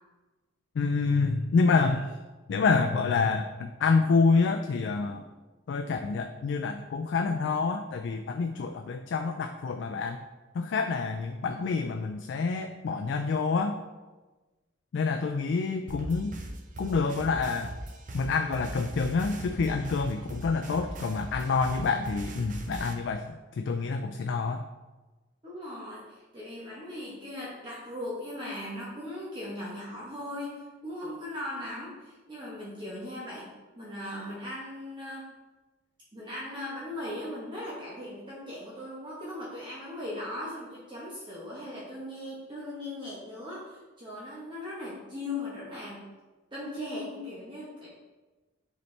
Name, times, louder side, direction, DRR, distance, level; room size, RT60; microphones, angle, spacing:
voice 1, 0.8-2.1 2.5-5.2 5.7-10.2 10.5-13.8 14.9-16.4 16.8-17.7 18.1-24.6, left 4 dB, 65° left, 6 dB, 0.3 m, -27 dB
sound 1, 15.9-22.9, right 1 dB, 40° right, 0.6 m, -40 dB
voice 2, 25.4-33.5 33.8-35.3 36.1-46.0 46.5-48.0, left 1 dB, 25° right, -7 dB, 1.0 m, -38 dB
7.0 x 4.1 x 3.3 m, 1.2 s
head